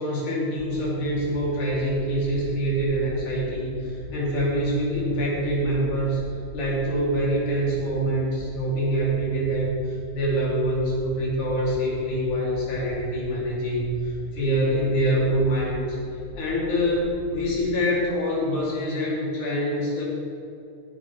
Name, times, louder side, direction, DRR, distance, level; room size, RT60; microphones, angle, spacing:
voice 1, 0.0-6.2 6.5-16.0 16.4-20.0, equal, 60° left, -6 dB, 4.6 m, -25 dB
sound 1, 0.8-4.7 4.9-8.1 8.3-8.7 9.0-9.3 9.6-9.9 10.2-10.6 10.8-11.2 11.4-11.8 12.1-12.4 12.7-13.0 13.3-13.6 13.9-14.2 14.5-15.5 15.7-16.0 16.3-16.6 16.9-17.6, equal, 15° left, 1.5 m, -41 dB
17.0 x 9.9 x 3.4 m, 2.7 s
omnidirectional pair, 3.9 m